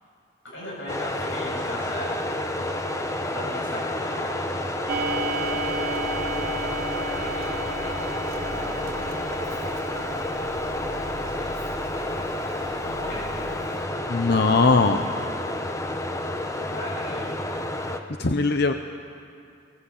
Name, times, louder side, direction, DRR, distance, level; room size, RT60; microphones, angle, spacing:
voice 1, 0.5-2.1 3.3-4.4 7.1-8.1 8.5-9.5 11.0-11.5 12.1-13.6 16.7-17.4, left 1 dB, 75° left, -5 dB, 6.8 m, -38 dB
sound 1, 0.9-18.0, left 1 dB, 15° left, 1.1 m, -30 dB
Clock, 4.9-13.8, right 2 dB, 50° right, 1.1 m, -34 dB
voice 2, 14.1-15.0 18.2-18.7, left 3 dB, 60° left, 7 dB, 0.9 m, -20 dB
23.0 x 18.5 x 8.4 m, 2.5 s
head